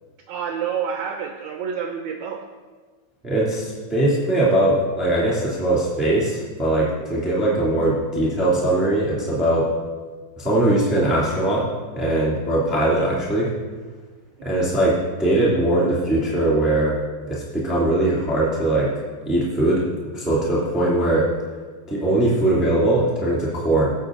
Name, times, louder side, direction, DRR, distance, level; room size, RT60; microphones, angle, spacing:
voice 1, 0.3-2.4 7.4-7.5 14.4-14.6, right 7 dB, 80° right, 4 dB, 1.6 m, -29 dB
voice 2, 3.2-9.6 10.4-11.7 11.9-13.5 14.4-16.9 17.3-18.9 19.2-19.8 20.1-21.2 21.9-23.9, right 1 dB, ahead, -6 dB, 2.0 m, -20 dB
18.5 x 7.7 x 3.9 m, 1.4 s
omnidirectional pair, 4.2 m